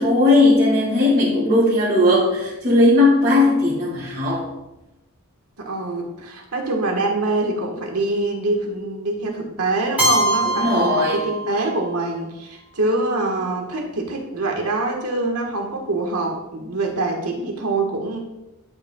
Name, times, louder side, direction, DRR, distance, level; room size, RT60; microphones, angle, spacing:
voice 1, 0.0-4.5 10.5-11.2, left 2 dB, 45° right, -9 dB, 2.1 m, -17 dB
voice 2, 5.6-18.2, right 2 dB, 90° right, 1 dB, 1.4 m, -24 dB
Keyboard (musical), 10.0-11.9, right 1 dB, 5° right, 2.5 m, -23 dB
11.5 x 4.9 x 2.3 m, 0.97 s
head